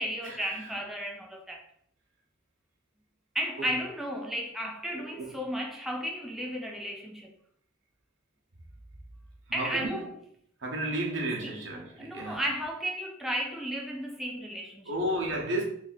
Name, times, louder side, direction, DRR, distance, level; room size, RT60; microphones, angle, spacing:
voice 1, 0.0-1.6 3.3-7.3 9.5-10.1 11.4-14.9, equal, ahead, 0.4 m, -34 dB
voice 2, 4.9-5.3 9.5-10.1 10.6-12.4 14.9-15.6, right 1 dB, 75° right, 1.0 m, -32 dB
3.4 x 2.7 x 4.1 m
head